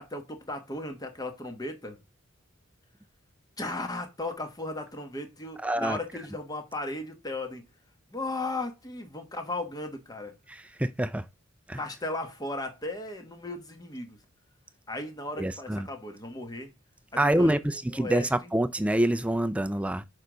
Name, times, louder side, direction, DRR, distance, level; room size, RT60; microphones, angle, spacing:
voice 1, 0.0-2.0 3.6-7.6 8.1-10.3 11.7-14.2 14.9-16.7 17.2-17.6 18.0-18.3, left 2 dB, 20° left, 1.1 m, -36 dB
voice 2, 5.6-6.0 10.5-11.3 11.7-11.8 15.4-15.9 17.2-20.0, right 1 dB, 5° right, 0.3 m, -26 dB
6.7 x 4.8 x 3.8 m
head